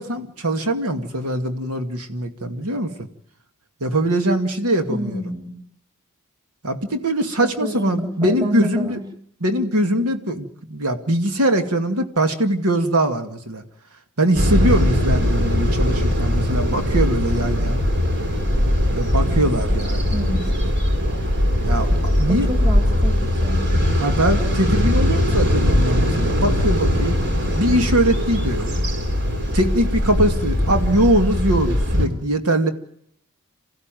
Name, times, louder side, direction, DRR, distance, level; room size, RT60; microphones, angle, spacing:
voice 1, 0.0-3.1 3.8-5.2 6.6-9.0 9.4-13.6 14.2-17.8 18.9-20.1 20.6-20.7 21.6-22.5 24.0-27.2 27.5-28.7 29.5-32.7, right 1 dB, 80° right, 7 dB, 2.4 m, -22 dB
voice 2, 4.9-5.5 7.6-9.0 20.1-20.6 22.3-23.6, equal, 20° right, 5 dB, 4.0 m, -28 dB
sound 1, 14.3-32.1, left 1 dB, 55° right, 3.8 m, -20 dB
27.5 x 15.5 x 9.2 m, 0.71 s
head